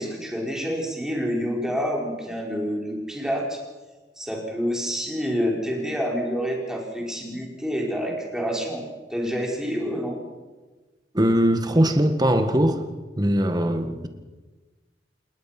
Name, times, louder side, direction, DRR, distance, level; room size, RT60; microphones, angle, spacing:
voice 1, 0.0-3.6 4.2-8.8 9.1-10.2, equal, 5° right, 5.2 m, -28 dB
voice 2, 11.1-12.8 13.2-14.1, equal, 25° right, 1.8 m, -20 dB
29.0 x 19.0 x 6.0 m
head